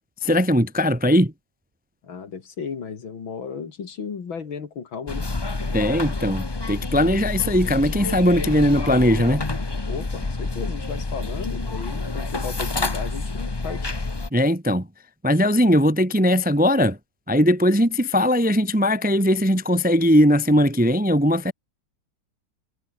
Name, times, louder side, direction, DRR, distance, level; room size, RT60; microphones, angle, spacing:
voice 1, 0.2-1.3 5.7-9.4 14.3-14.9 15.2-17.0 17.3-21.5, equal, 5° right, 0.9 m, -19 dB
voice 2, 2.0-5.3 9.9-13.9, left 6 dB, 70° left, 3.2 m, -34 dB
sound 1, 5.1-14.3, left 3 dB, 20° left, 0.6 m, -28 dB
omnidirectional pair, 2.3 m